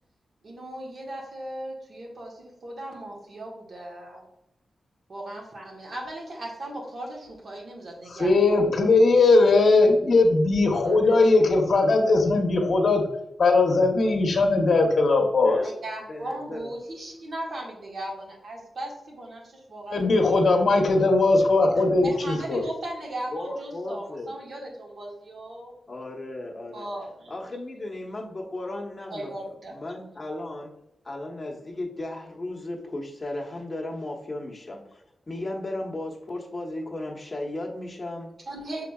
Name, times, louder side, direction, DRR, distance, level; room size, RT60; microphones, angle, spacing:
voice 1, 0.4-4.2 5.1-8.7 10.8-11.2 15.6-20.6 22.0-25.7 26.7-27.3 29.1-29.8 38.5-38.9, right 1 dB, 65° right, -2 dB, 1.4 m, -37 dB
voice 2, 8.1-13.0 13.4-15.6 19.9-22.6, left 3 dB, 65° left, 2 dB, 0.9 m, -19 dB
voice 3, 16.1-16.7 23.3-24.4 25.9-26.9 27.3-29.3 29.7-30.8 31.0-38.4, left 1 dB, 35° left, -2 dB, 1.0 m, -35 dB
5.8 x 3.7 x 2.3 m, 0.85 s
cardioid pair, 60°, 0 cm